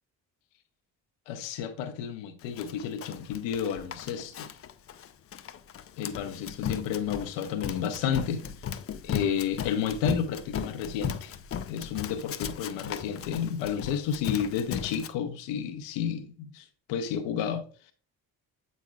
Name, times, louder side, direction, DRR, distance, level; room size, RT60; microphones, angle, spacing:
voice 1, 1.3-4.5 6.0-8.4 9.0-11.4 11.7-17.9, left 8 dB, 60° left, 1.0 m, -31 dB
Run, 2.6-15.1, left 8 dB, 30° left, 0.5 m, -36 dB
8.2 x 5.3 x 2.3 m
figure-of-eight pair, 40°, 50 cm